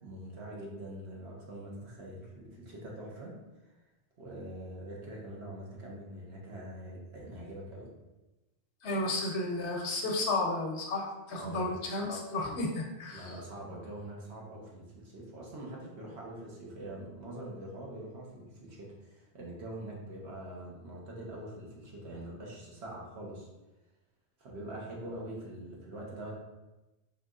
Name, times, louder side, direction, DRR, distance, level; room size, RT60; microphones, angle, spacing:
voice 1, 0.0-3.4 3.6-3.7 4.2-7.9 11.3-11.8 13.1-23.5 24.4-26.4, right 1 dB, 75° right, -3 dB, 1.2 m, -44 dB
voice 2, 8.8-13.3, left 2 dB, 80° left, 1 dB, 1.0 m, -33 dB
4.6 x 3.0 x 2.4 m, 1.1 s
omnidirectional pair, 1.1 m